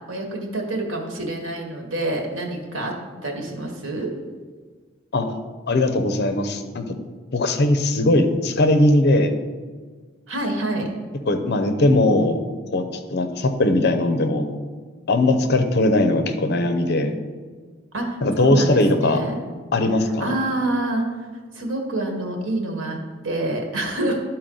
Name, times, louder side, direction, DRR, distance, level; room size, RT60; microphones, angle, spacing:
voice 1, 0.1-4.1 10.3-10.9 17.9-19.3 20.0-21.3 21.5-24.2, right 2 dB, 90° right, 2 dB, 1.4 m, -27 dB
voice 2, 5.7-6.9 7.3-9.3 11.3-12.4 12.7-14.6 15.1-17.2 18.2-19.2 19.7-20.2, left 2 dB, 60° left, 7 dB, 0.7 m, -19 dB
11.5 x 4.4 x 3.9 m, 1.5 s
head